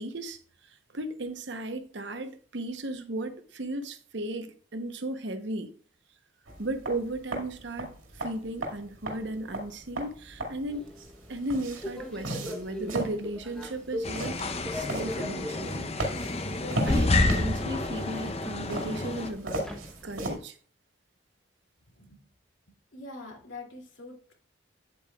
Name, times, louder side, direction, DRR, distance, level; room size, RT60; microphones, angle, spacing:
voice 1, 0.0-5.7 6.6-10.9 11.3-15.9 16.9-19.7 20.0-20.6, right 1 dB, 60° right, 0.9 m, -35 dB
sound 1, 6.5-20.4, right 1 dB, 85° right, 2.2 m, -37 dB
Subway metro underground, 10.7-20.4, left 1 dB, 5° left, 0.9 m, -42 dB
sound 2, 14.0-19.3, left 2 dB, 30° left, 0.6 m, -29 dB
voice 2, 22.7-24.3, left 2 dB, 70° left, 2.5 m, -45 dB
9.4 x 8.2 x 2.3 m
head